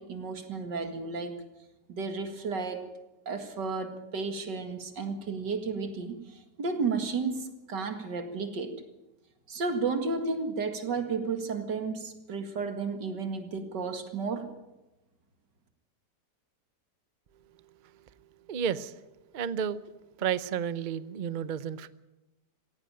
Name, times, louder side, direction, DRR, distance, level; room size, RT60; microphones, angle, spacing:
voice 1, 0.0-1.4 1.9-2.9 3.3-8.8 9.5-14.5, right 4 dB, 90° right, 7 dB, 2.6 m, -33 dB
voice 2, 18.5-19.0 19.3-19.8 20.2-21.9, right 8 dB, 50° right, 15 dB, 0.5 m, -31 dB
17.0 x 17.0 x 8.9 m, 1.0 s
omnidirectional pair, 1.8 m